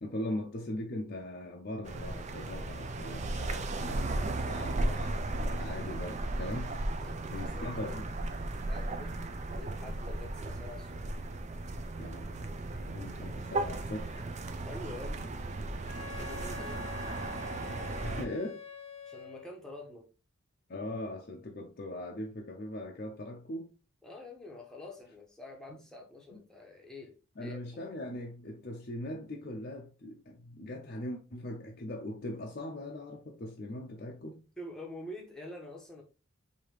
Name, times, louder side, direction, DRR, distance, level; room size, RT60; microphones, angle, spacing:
voice 1, 0.0-6.7 7.3-8.2 12.0-12.5 12.8-14.3 16.5-16.7 18.0-18.6 20.7-23.7 26.3-26.4 27.4-34.4, left 1 dB, 45° left, 0.5 m, -40 dB
sound 1, 1.8-18.3, right 2 dB, 30° right, 0.4 m, -36 dB
voice 2, 4.2-5.2 6.9-7.7 8.5-9.2 9.5-11.0 14.6-15.3 16.1-17.2 19.1-20.1 24.0-27.9 34.6-36.0, left 1 dB, 5° left, 0.9 m, -47 dB
Wind instrument woodwind instrument, 15.9-19.6, left 5 dB, 75° left, 0.8 m, -46 dB
4.7 x 2.8 x 3.2 m
head